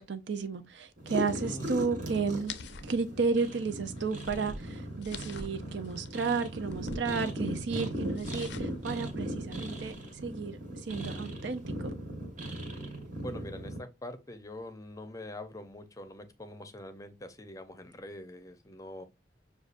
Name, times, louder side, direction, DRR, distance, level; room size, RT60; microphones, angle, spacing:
voice 1, 0.0-2.5 2.8-9.9 10.2-10.6 10.9-11.9, right 4 dB, 75° right, 0.6 m, -32 dB
sound 1, 1.0-13.8, equal, 45° right, 1.2 m, -38 dB
voice 2, 1.4-1.9 13.2-19.0, left 1 dB, 20° left, 0.6 m, -44 dB
sound 2, 2.5-10.2, left 4 dB, 70° left, 0.5 m, -48 dB
6.5 x 2.4 x 2.4 m
head